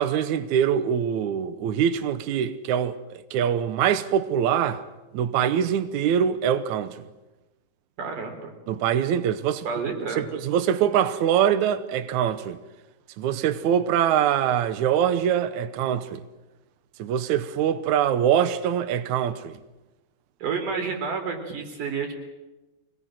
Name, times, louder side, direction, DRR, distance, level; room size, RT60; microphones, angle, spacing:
voice 1, 0.0-4.8 5.1-7.1 8.7-9.7 10.2-12.6 13.2-16.2 17.0-19.5, right 9 dB, 75° right, 1.8 m, -23 dB
voice 2, 8.0-8.5 9.7-10.2 20.4-22.1, right 5 dB, 55° right, 5.2 m, -30 dB
25.0 x 20.0 x 7.7 m
omnidirectional pair, 4.6 m